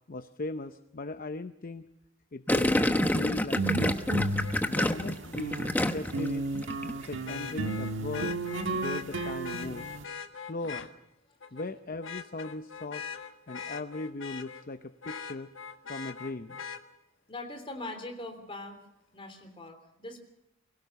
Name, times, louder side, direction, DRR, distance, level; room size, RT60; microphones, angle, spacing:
voice 1, 0.1-1.8 2.3-2.7 3.1-4.3 4.7-5.6 5.9-6.4 7.0-8.3 8.7-9.9 10.3-10.9 11.5-13.0 13.5-15.5 15.9-16.6, left 2 dB, 45° left, 10 dB, 0.7 m, -38 dB
Gurgling, 2.5-6.3 6.5-6.9, left 1 dB, 10° left, 1.0 m, -27 dB
sound 1, 3.5-5.8 6.1-10.0, right 2 dB, 70° right, 1.5 m, -33 dB
Vehicle horn car horn honking, 4.4-4.5 7.3-10.9 11.4-11.7 12.0-14.6 15.0-16.8 18.6-18.7, left 6 dB, 85° left, 1.6 m, -41 dB
voice 2, 17.3-18.9 19.1-20.2, left 2 dB, 30° left, 5 dB, 3.4 m, -41 dB
23.0 x 17.0 x 6.8 m, 0.83 s
head